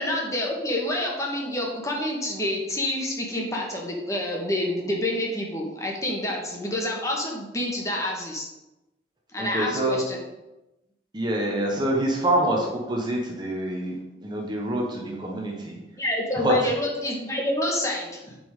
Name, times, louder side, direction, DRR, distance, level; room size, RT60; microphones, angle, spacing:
voice 1, 0.0-8.5 9.3-10.2 16.0-18.4, left 1 dB, 20° left, -1 dB, 1.4 m, -28 dB
voice 2, 9.4-10.0 11.1-14.0 14.2-15.8 16.4-16.7, right 1 dB, 25° right, -1 dB, 1.1 m, -26 dB
9.3 x 5.4 x 3.7 m, 0.99 s
head